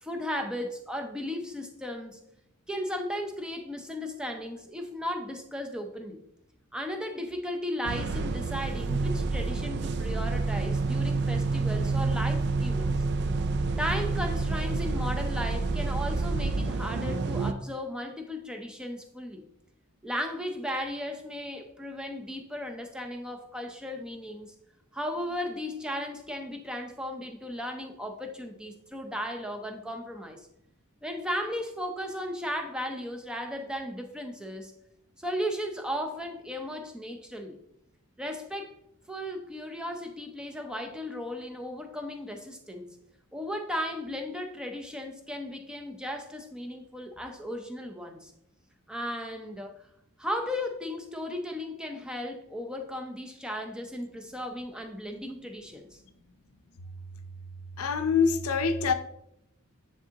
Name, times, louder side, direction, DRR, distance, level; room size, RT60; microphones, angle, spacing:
voice 1, 0.0-2.2 2.7-6.2 6.7-12.9 13.8-19.5 20.0-24.5 24.9-30.4 31.0-34.7 35.2-37.6 38.2-38.7 39.1-43.0 43.3-48.3 48.9-49.7 50.2-56.0, equal, 5° right, 4 dB, 0.6 m, -35 dB
sound 1, 7.8-17.5, right 3 dB, 50° right, 0.4 m, -28 dB
voice 2, 57.8-58.9, left 5 dB, 85° left, 9 dB, 0.6 m, -25 dB
9.7 x 3.6 x 2.8 m, 0.78 s
head